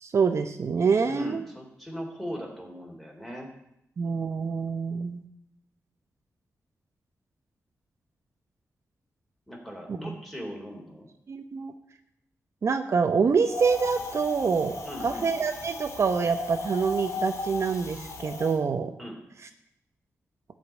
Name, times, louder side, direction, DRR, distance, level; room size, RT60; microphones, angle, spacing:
voice 1, 0.0-1.4 4.0-5.2 9.9-10.1 11.3-11.7 12.6-14.8 15.0-18.9, right 5 dB, 60° right, 7 dB, 0.9 m, -26 dB
voice 2, 1.0-3.5 9.5-11.1 14.8-15.3 19.0-19.2, equal, ahead, 0 dB, 3.5 m, -39 dB
Wind, 13.5-18.6, left 2 dB, 65° left, 2.6 m, -36 dB
14.0 x 5.3 x 9.3 m, 0.80 s
wide cardioid pair, 105°, 5 cm